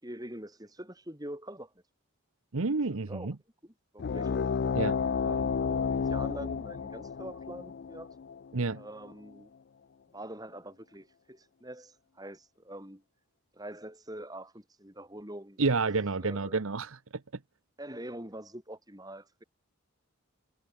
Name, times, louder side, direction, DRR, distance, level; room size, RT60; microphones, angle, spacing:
voice 1, 0.0-1.7 3.1-3.3 3.6-4.4 5.3-8.1 8.7-9.5 10.1-13.0 13.5-15.6 16.2-16.6 17.8-19.4, right 1 dB, 15° right, 5.6 m, -44 dB
voice 2, 2.5-3.4 4.7-5.0 8.5-8.8 15.6-17.0, right 3 dB, 70° right, 0.9 m, -29 dB
sound 1, 4.0-9.1, left 6 dB, 50° left, 0.3 m, -31 dB
head